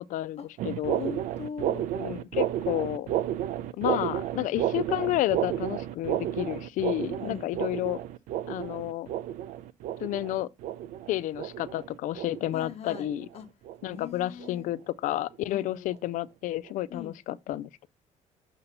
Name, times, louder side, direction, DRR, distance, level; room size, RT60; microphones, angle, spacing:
voice 1, 0.1-1.0 1.9-3.1 3.8-8.0 8.5-9.1 10.0-10.5 11.1-13.3 13.8-17.9, left 14 dB, 70° left, 0.4 m, -31 dB
sound 1, 0.6-13.4 13.7-14.0 14.4-14.7 15.1-15.3 15.9-16.0 16.7-16.8, right 12 dB, 80° right, 0.4 m, -32 dB
voice 2, 0.9-1.9 4.5-4.6 7.2-7.5 12.5-13.1 13.3-13.5 13.9-14.7 15.5-15.9 16.9-17.1, left 7 dB, 50° left, 1.1 m, -40 dB
6.7 x 2.8 x 5.3 m
cardioid pair, 100°, 13 cm